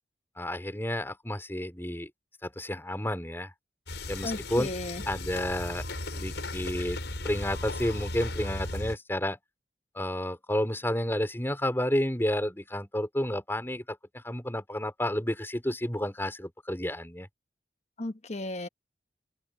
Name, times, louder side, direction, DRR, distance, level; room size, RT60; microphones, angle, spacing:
voice 1, 0.4-2.1 2.4-3.5 4.1-4.7 5.1-5.8 6.1-7.0 7.2-9.4 9.9-17.3, left 1 dB, 15° left, 4.0 m, -31 dB
sound 1, 3.9-9.0, left 2 dB, 80° left, 5.7 m, -36 dB
voice 2, 4.2-5.0 18.0-18.7, left 2 dB, 40° left, 1.1 m, -35 dB
head